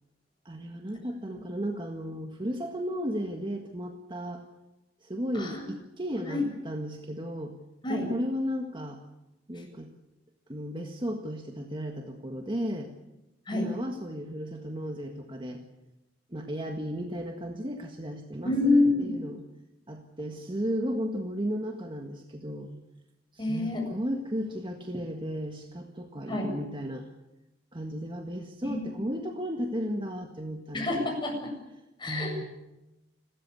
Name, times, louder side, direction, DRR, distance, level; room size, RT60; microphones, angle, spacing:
voice 1, 0.4-4.4 5.0-7.6 7.9-9.0 9.5-9.9 10.5-12.9 13.5-15.6 16.3-19.4 19.9-22.7 23.3-27.1 27.7-31.1 32.1-32.4, equal, 25° right, 3 dB, 1.7 m, -34 dB
voice 2, 5.3-5.7 6.3-6.4 7.8-8.1 9.5-9.6 13.5-13.7 18.4-19.1 23.4-23.8 26.3-26.5 28.6-29.2 30.7-31.5 32.0-32.5, left 2 dB, 25° left, 1 dB, 7.8 m, -28 dB
29.5 x 14.0 x 8.4 m, 0.97 s
head